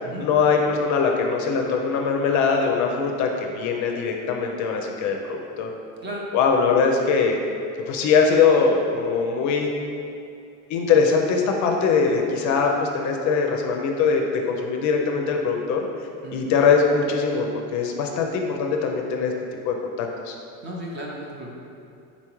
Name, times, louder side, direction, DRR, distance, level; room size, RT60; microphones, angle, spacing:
voice 1, 0.2-5.7 6.3-7.4 7.9-9.7 10.7-15.8 16.3-19.3 19.6-20.4, left 5 dB, 50° left, 2 dB, 0.4 m, -22 dB
voice 2, 20.6-21.5, right 1 dB, 30° right, -2 dB, 0.6 m, -34 dB
4.0 x 3.4 x 3.0 m, 2.5 s
supercardioid pair, 120°, 37 cm